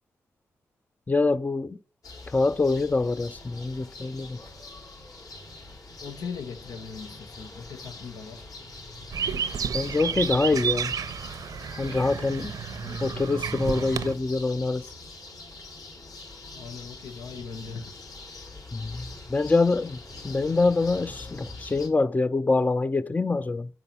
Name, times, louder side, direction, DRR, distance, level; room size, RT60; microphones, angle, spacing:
voice 1, 1.1-1.8 2.3-4.4 9.7-10.9 11.8-12.5 13.0-14.9 18.7-19.0 19.3-20.0 20.2-23.7, left 3 dB, 25° left, 0.5 m, -25 dB
sound 1, 2.0-21.9, left 2 dB, 65° left, 3.6 m, -44 dB
voice 2, 6.0-8.4 12.7-13.4 16.5-17.9, left 5 dB, 80° left, 0.9 m, -40 dB
sound 2, 9.1-14.1, right 7 dB, 70° right, 0.7 m, -31 dB
8.0 x 5.6 x 5.7 m
cardioid pair, 55°, 6 cm